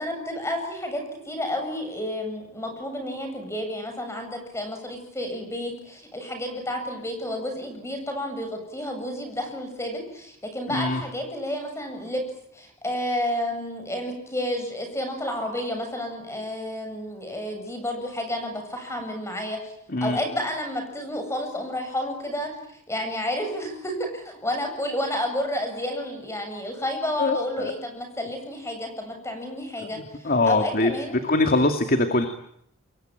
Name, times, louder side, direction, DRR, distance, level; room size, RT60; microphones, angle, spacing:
voice 1, 0.0-12.2 12.5-19.7 20.0-22.5 22.9-31.2, left 1 dB, 10° left, 5 dB, 7.8 m, -31 dB
voice 2, 10.7-11.0 19.9-20.2 27.2-27.7 29.8-30.9 31.2-32.3, left 2 dB, 40° left, 6 dB, 2.3 m, -23 dB
28.0 x 23.0 x 9.1 m, 0.74 s
head